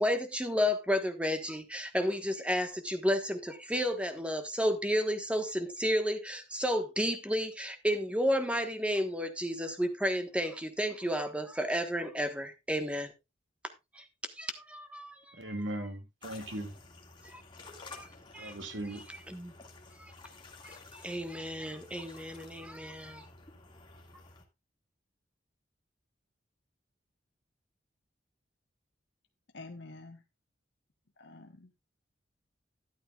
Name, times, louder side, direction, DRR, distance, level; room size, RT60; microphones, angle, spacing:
voice 1, 0.0-13.1 13.9-14.0 14.4-15.6 17.3-17.4 17.9-18.1 18.3-18.6 19.3-19.5 20.0-20.1 20.6-23.3, equal, 5° right, 1.3 m, -32 dB
voice 2, 15.4-16.7 18.4-19.0, right 1 dB, 85° right, 2.3 m, -38 dB
sound 1, 16.2-24.4, left 3 dB, 25° left, 2.1 m, -52 dB
voice 3, 29.5-30.2 31.2-31.8, left 2 dB, 85° left, 1.3 m, -48 dB
12.5 x 11.0 x 2.4 m
head